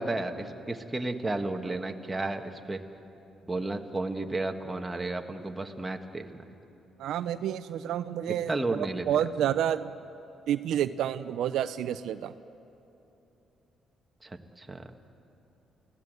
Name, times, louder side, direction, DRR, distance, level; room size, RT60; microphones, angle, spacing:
voice 1, 0.0-2.8 3.5-6.4 8.5-9.0 14.6-14.8, right 2 dB, 15° right, 4 dB, 1.7 m, -32 dB
voice 2, 7.0-9.9 10.5-12.3, right 10 dB, 80° right, 12 dB, 0.6 m, -29 dB
30.0 x 16.5 x 8.1 m, 2.9 s
cardioid pair, 90°, 0 cm